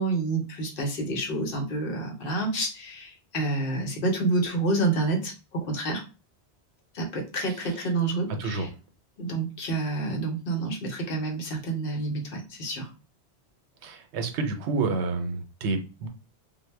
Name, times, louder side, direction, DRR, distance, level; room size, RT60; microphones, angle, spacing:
voice 1, 0.0-6.0 6.9-8.7 9.2-12.9, right 2 dB, 60° left, 1 dB, 0.9 m, -28 dB
voice 2, 8.4-8.7 13.8-16.1, right 3 dB, 90° right, 6 dB, 0.9 m, -29 dB
2.1 x 2.0 x 3.2 m, 0.31 s
omnidirectional pair, 1.1 m